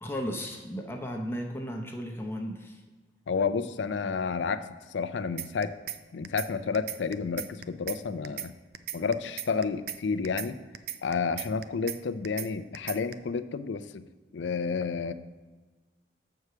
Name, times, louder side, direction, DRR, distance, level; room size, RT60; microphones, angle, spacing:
voice 1, 0.0-2.8, equal, 15° left, 1 dB, 0.6 m, -35 dB
voice 2, 3.3-5.7 6.1-8.5 8.9-10.6 11.0-14.0 14.3-15.1, left 5 dB, 80° left, 12 dB, 0.4 m, -30 dB
sound 1, 5.4-6.0 6.2-6.5 6.7-8.0 8.2-8.5 8.7-10.0 10.2-10.5 10.7-12.0 12.2-12.5 12.7-13.1, right 11 dB, 55° right, 0.4 m, -36 dB
6.9 x 4.7 x 6.7 m, 1.3 s
head